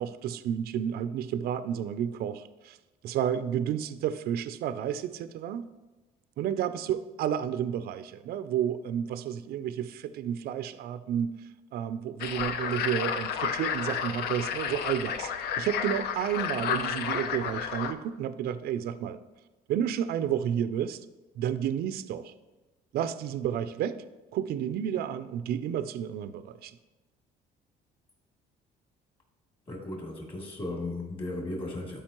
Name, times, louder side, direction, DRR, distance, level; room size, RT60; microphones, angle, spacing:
voice 1, 0.0-2.8 3.0-5.7 6.4-15.3 15.6-19.2 19.7-21.0 21.4-22.3 22.9-24.0 24.3-26.8, right 9 dB, 65° right, 12 dB, 0.4 m, -31 dB
sound 1, 12.2-17.9, left 8 dB, 70° left, 0.6 m, -31 dB
voice 2, 29.7-32.0, left 2 dB, 35° left, -2 dB, 2.7 m, -36 dB
11.5 x 5.1 x 3.0 m, 1.1 s
cardioid pair, 110°, 17 cm